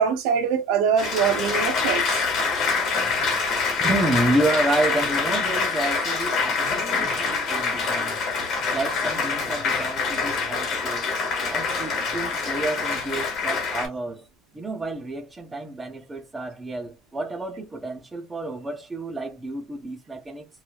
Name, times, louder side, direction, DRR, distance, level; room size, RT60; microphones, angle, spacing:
voice 1, 0.0-2.3, right 7 dB, 75° right, 0.7 m, -23 dB
Applause, 1.0-13.9, left 4 dB, 40° left, 1.8 m, -25 dB
voice 2, 3.8-8.2 8.7-11.1 11.5-14.2 14.5-20.5, right 2 dB, 10° right, 0.6 m, -29 dB
3.2 x 2.6 x 2.3 m
cardioid pair, 170°, 0 cm